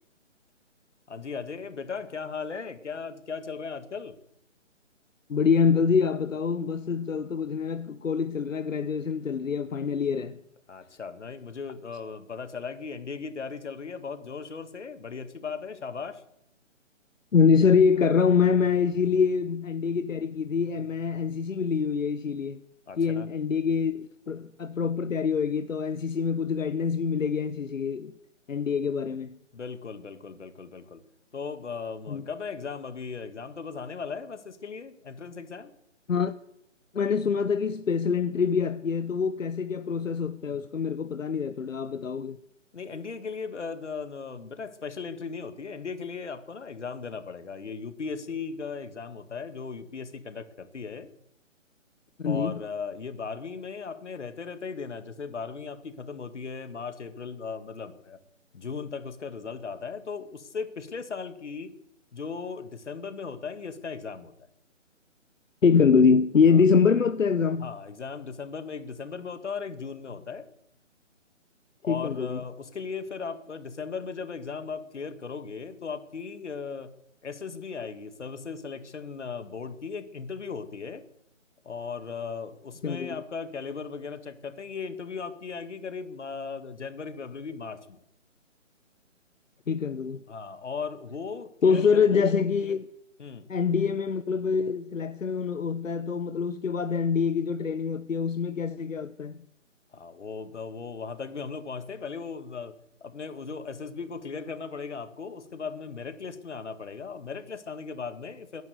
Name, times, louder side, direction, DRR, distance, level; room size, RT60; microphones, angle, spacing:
voice 1, 1.1-4.2 10.7-16.2 22.9-23.3 29.5-31.0 31.3-35.7 42.7-51.1 52.2-58.2 58.5-61.7 62.1-64.4 66.5-66.6 67.6-70.5 71.8-76.9 77.2-81.0 81.6-88.0 90.3-92.1 93.2-93.5 99.9-102.8 103.0-108.6, left 5 dB, 65° left, 2.0 m, -37 dB
voice 2, 5.3-10.4 17.3-22.6 23.0-28.1 28.5-29.4 32.1-32.2 36.1-36.3 36.9-42.4 52.2-52.6 65.6-67.7 71.9-72.4 82.8-83.2 89.7-90.2 91.6-92.9 93.5-99.4, left 6 dB, 85° left, 1.0 m, -25 dB
16.0 x 10.5 x 8.1 m
figure-of-eight pair, 160°, 38 cm